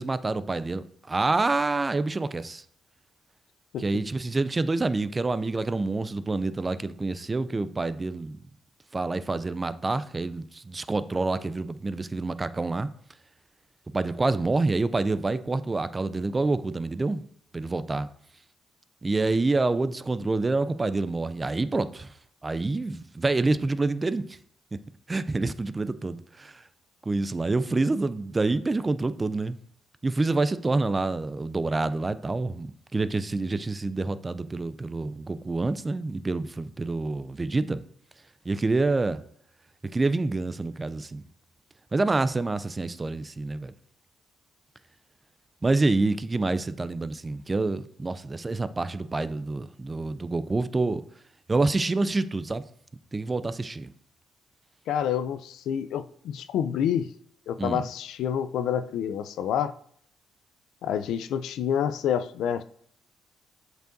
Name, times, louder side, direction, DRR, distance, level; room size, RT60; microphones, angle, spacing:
voice 1, 0.0-2.6 3.8-8.4 8.9-12.9 13.9-17.2 17.5-18.1 19.0-22.1 22.4-24.4 25.1-26.6 27.1-29.6 30.0-37.8 38.5-39.2 39.9-41.2 41.9-43.7 45.6-51.0 51.5-52.6 53.1-53.9 57.6-57.8, right 3 dB, 25° right, 0.3 m, -27 dB
voice 2, 54.9-57.1 57.5-59.7 60.8-62.6, left 9 dB, 80° left, 0.3 m, -28 dB
7.8 x 4.6 x 2.6 m
cardioid pair, 90°, 0 cm